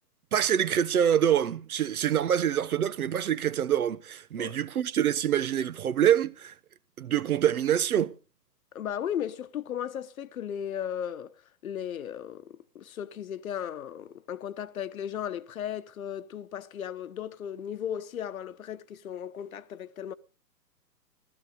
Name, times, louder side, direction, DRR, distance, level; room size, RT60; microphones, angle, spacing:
voice 1, 0.3-6.5 7.0-8.1, right 10 dB, 60° right, 1.1 m, -25 dB
voice 2, 8.7-11.3 11.6-20.1, left 9 dB, 55° left, 1.1 m, -36 dB
15.0 x 13.0 x 5.1 m
hypercardioid pair, 140°, 50 cm